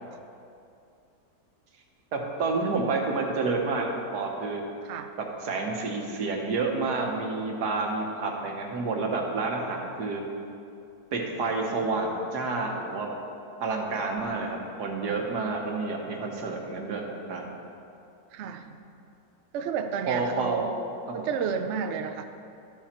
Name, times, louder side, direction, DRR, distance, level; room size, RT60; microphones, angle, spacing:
voice 1, 2.1-4.6 5.4-10.2 11.1-13.1 13.6-17.6 20.1-20.6 21.1-21.3, right 3 dB, 90° right, 1 dB, 1.7 m, -29 dB
voice 2, 18.3-18.8 19.5-20.7 21.1-22.2, right 7 dB, 60° right, 7 dB, 0.7 m, -31 dB
13.0 x 7.1 x 4.4 m, 2.6 s
omnidirectional pair, 1.7 m